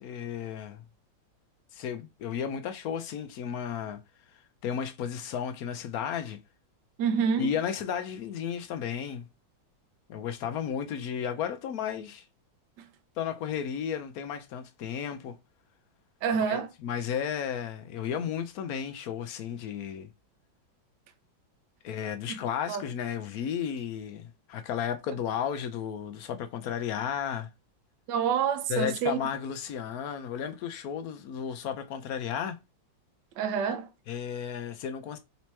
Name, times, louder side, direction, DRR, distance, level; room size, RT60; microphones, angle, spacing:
voice 1, 0.0-0.8 1.7-4.0 4.6-6.4 7.4-9.2 10.1-12.2 13.2-15.3 16.4-20.1 21.8-27.5 28.7-32.6 34.1-35.2, left 8 dB, 65° left, 0.9 m, -33 dB
voice 2, 7.0-7.5 16.2-16.7 22.3-22.4 22.7-22.8 28.1-29.2 33.4-33.9, right 7 dB, 70° right, 1.3 m, -27 dB
4.2 x 2.9 x 4.5 m
omnidirectional pair, 2.1 m